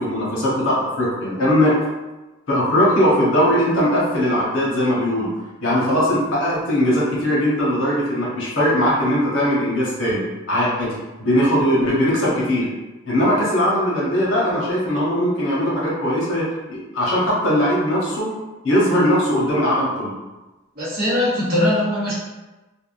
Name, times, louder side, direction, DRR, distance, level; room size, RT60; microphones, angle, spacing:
voice 1, 0.0-1.8 2.5-5.3 5.6-12.7 13.1-18.3 18.6-20.1, equal, 75° left, -5 dB, 1.0 m, -20 dB
voice 2, 20.8-22.1, left 1 dB, 45° right, -7 dB, 1.0 m, -20 dB
3.5 x 2.2 x 2.4 m, 1.1 s
head